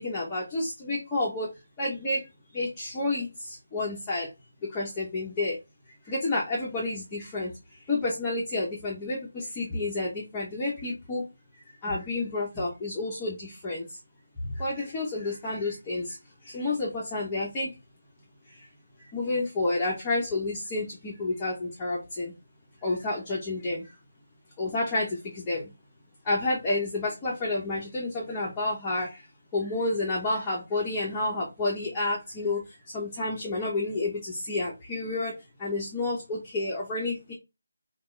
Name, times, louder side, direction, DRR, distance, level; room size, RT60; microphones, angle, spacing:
voice 1, 0.0-1.5 1.8-2.2 2.5-4.3 4.7-5.6 6.1-7.5 7.9-11.2 11.8-13.9 14.6-16.2 16.4-17.7 19.1-22.3 22.8-23.9 24.6-25.7 26.2-29.2 29.5-32.6 32.9-37.3, left 2 dB, 10° left, -5 dB, 0.8 m, -30 dB
5.8 x 2.4 x 3.2 m, 0.25 s
figure-of-eight pair, 175°, 0 cm